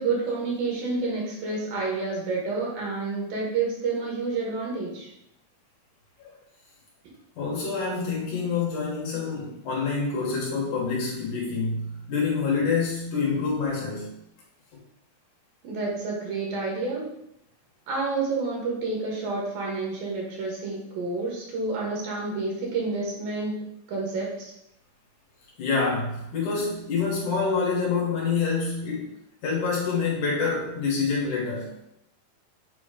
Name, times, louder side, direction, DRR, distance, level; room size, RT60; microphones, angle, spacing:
voice 1, 0.0-5.1 15.6-17.0 17.9-23.5 23.9-24.5, right 3 dB, 70° right, -3 dB, 3.4 m, -29 dB
voice 2, 7.4-14.1 25.6-29.1 29.4-31.7, left 4 dB, 65° left, -3 dB, 2.6 m, -27 dB
8.0 x 3.1 x 5.0 m, 0.80 s
omnidirectional pair, 4.3 m